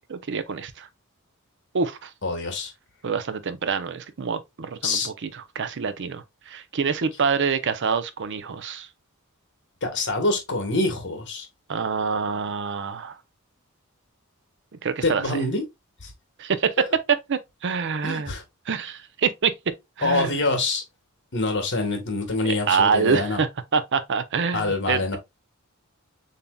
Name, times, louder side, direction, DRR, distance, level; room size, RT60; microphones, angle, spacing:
voice 1, 0.1-0.9 1.7-2.1 3.0-8.9 11.7-13.2 14.8-15.4 16.4-18.3 18.7-19.5 20.0-20.4 22.4-25.2, right 5 dB, 55° right, 0.6 m, -26 dB
voice 2, 2.2-2.7 4.8-5.1 9.8-11.5 15.0-15.6 18.0-18.4 20.0-20.8 21.3-23.4 24.5-25.2, left 2 dB, 55° left, 1.3 m, -25 dB
6.9 x 2.8 x 2.2 m
head